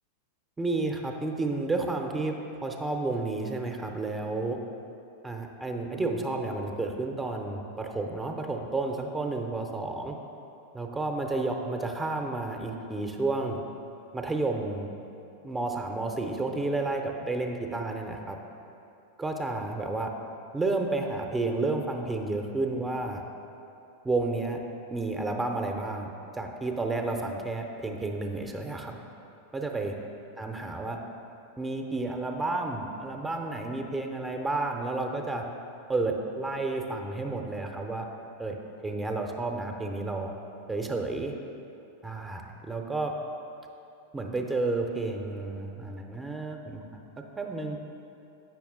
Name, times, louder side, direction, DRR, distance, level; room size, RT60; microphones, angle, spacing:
voice 1, 0.6-2.4 2.6-4.6 5.2-10.2 10.7-13.6 14.1-14.9 15.4-18.4 19.2-20.1 20.5-23.2 24.0-24.6 24.9-29.0 29.5-29.9 30.4-31.0 31.6-35.4 35.9-38.1 38.4-38.6 38.8-40.3 40.7-41.3 42.0-43.1 44.1-47.0 47.4-47.8, right 3 dB, 10° right, 2 dB, 0.6 m, -31 dB
8.3 x 5.9 x 3.6 m, 2.9 s
figure-of-eight pair, 90°, 0 cm